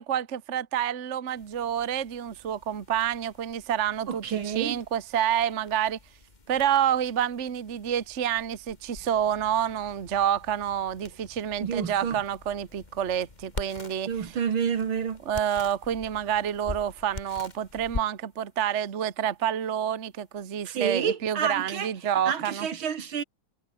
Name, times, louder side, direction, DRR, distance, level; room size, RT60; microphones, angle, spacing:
voice 1, 0.0-6.0 6.5-14.4 15.2-22.7, right 9 dB, 40° right, 1.3 m, -28 dB
sound 1, 1.4-21.0, left 3 dB, 20° left, 2.1 m, -45 dB
voice 2, 4.1-4.8 11.6-12.2 14.1-15.2 20.6-21.9 22.3-23.2, right 7 dB, 75° right, 2.6 m, -29 dB
omnidirectional pair, 2.3 m